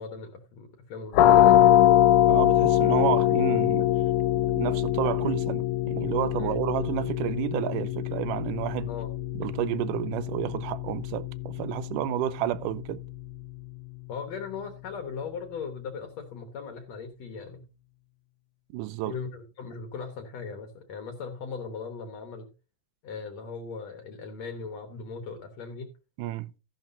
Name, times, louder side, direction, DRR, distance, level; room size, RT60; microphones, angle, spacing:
voice 1, 0.0-1.9 6.4-6.6 8.9-9.1 14.1-17.7 19.1-22.5 23.0-25.9, left 5 dB, 65° left, 2.3 m, -38 dB
sound 1, 1.1-12.6, left 12 dB, 80° left, 2.2 m, -23 dB
voice 2, 2.3-3.9 4.6-8.9 9.3-13.0 18.7-19.1 26.2-26.5, right 13 dB, 85° right, 2.3 m, -30 dB
13.5 x 10.5 x 2.6 m
omnidirectional pair, 3.6 m